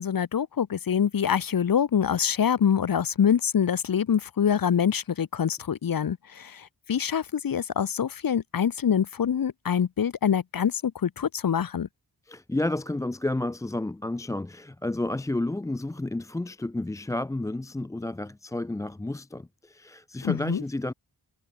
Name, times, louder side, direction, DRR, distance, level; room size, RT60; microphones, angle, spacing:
voice 1, 0.0-11.9 20.2-20.6, left 8 dB, 60° left, 1.2 m, -25 dB
voice 2, 12.3-20.9, left 2 dB, 10° left, 0.3 m, -31 dB
wide cardioid pair, 175°, 40 cm